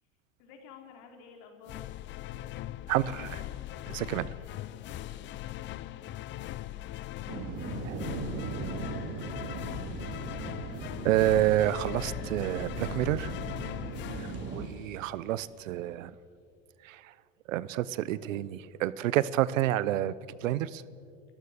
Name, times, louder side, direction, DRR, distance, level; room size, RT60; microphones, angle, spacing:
voice 1, 0.4-2.4 4.8-8.9 9.2-9.7 13.7-14.1, left 5 dB, 60° left, 4 dB, 4.0 m, -55 dB
sound 1, 1.7-15.3, left 14 dB, 30° left, 0.5 m, -40 dB
voice 2, 2.9-3.4 3.9-4.3 7.8-8.0 8.4-8.5 11.0-13.3 14.2-16.1 16.8-17.1 17.5-20.2 20.4-20.8, right 13 dB, 85° right, 19 dB, 0.9 m, -29 dB
sound 2, 7.3-14.7, right 4 dB, 40° right, 2.7 m, -38 dB
30.0 x 14.0 x 6.6 m, 2.4 s
supercardioid pair, 125°, 38 cm